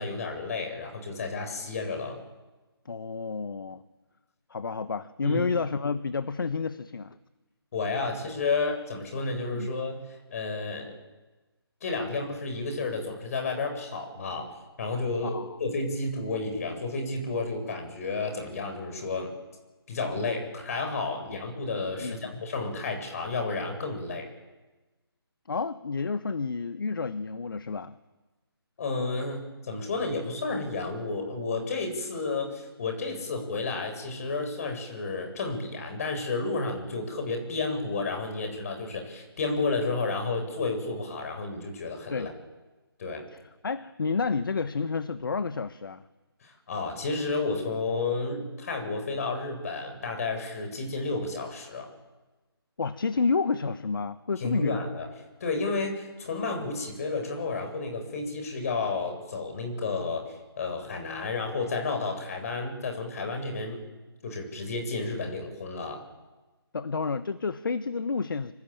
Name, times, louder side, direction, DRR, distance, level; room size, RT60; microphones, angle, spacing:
voice 1, 0.0-2.2 5.2-5.4 7.7-10.9 11.8-14.5 14.8-19.3 19.9-24.3 28.8-42.3 43.0-43.3 46.4-51.9 54.4-55.1 55.4-63.8 64.2-66.0, left 3 dB, 35° left, 4 dB, 7.4 m, -31 dB
voice 2, 2.8-3.8 4.5-7.2 9.5-9.7 15.2-15.6 22.0-22.4 25.5-27.9 42.1-42.3 43.3-46.0 52.8-54.8 66.7-68.5, left 4 dB, 55° left, 13 dB, 1.2 m, -30 dB
26.0 x 25.0 x 9.1 m, 1.2 s
figure-of-eight pair, 150°, 13 cm